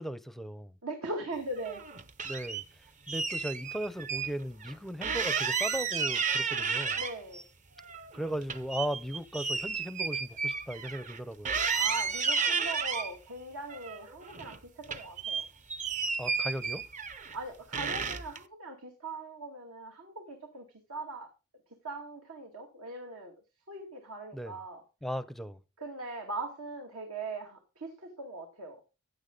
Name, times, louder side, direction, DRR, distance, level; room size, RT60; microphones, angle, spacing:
voice 1, 0.0-0.7 2.2-2.6 3.1-7.0 8.1-11.5 16.2-16.8 24.3-24.6 25.0-25.6, equal, ahead, 0.5 m, -37 dB
voice 2, 0.8-1.8 6.9-7.4 11.7-15.4 17.3-21.3 21.8-23.4 23.7-24.8 25.8-28.8, right 2 dB, 80° right, 2.3 m, -40 dB
sound 1, 1.6-2.6 3.1-4.3 4.6-4.7 5.0-7.4 7.8-11.2 11.4-13.1 13.7-14.6 14.8-17.4 17.7-18.4, right 5 dB, 35° right, 0.8 m, -32 dB
15.0 x 9.4 x 3.9 m
head